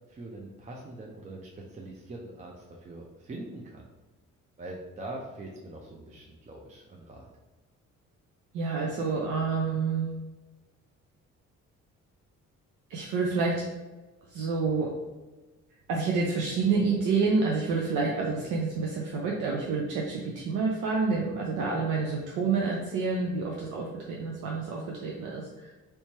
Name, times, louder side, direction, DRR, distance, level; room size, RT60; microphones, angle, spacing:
voice 1, 0.1-3.9 4.6-7.3, right 2 dB, 25° right, -1 dB, 0.5 m, -43 dB
voice 2, 8.5-10.1 12.9-13.7 14.3-14.9 15.9-25.7, right 4 dB, 85° right, -2 dB, 0.6 m, -28 dB
3.4 x 2.9 x 2.9 m, 1.2 s
cardioid pair, 90°, 30 cm